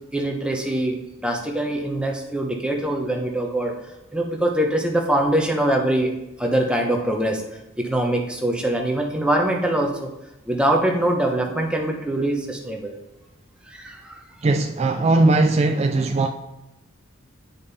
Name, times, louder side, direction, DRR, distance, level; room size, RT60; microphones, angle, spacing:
voice 1, 0.1-3.7 4.1-6.1 6.4-7.4 7.8-10.1 10.5-12.9 13.7-14.2, right 1 dB, 5° right, 1 dB, 0.8 m, -23 dB
voice 2, 14.4-16.3, right 2 dB, 30° right, 5 dB, 0.3 m, -19 dB
8.6 x 5.2 x 4.1 m, 0.95 s
head